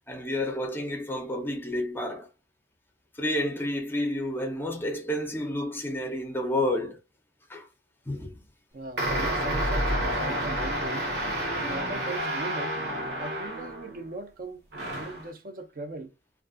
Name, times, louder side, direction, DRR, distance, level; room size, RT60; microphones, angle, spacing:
voice 1, 0.1-2.3 3.1-7.0 7.5-7.7 8.1-8.4, left 1 dB, 10° left, 0.5 m, -30 dB
voice 2, 8.7-11.1 11.5-12.8 13.2-16.1, right 2 dB, 50° right, 0.4 m, -39 dB
sound 1, 9.0-14.0 14.7-15.3, right 1 dB, 75° right, 1.0 m, -29 dB
2.4 x 2.2 x 2.3 m
head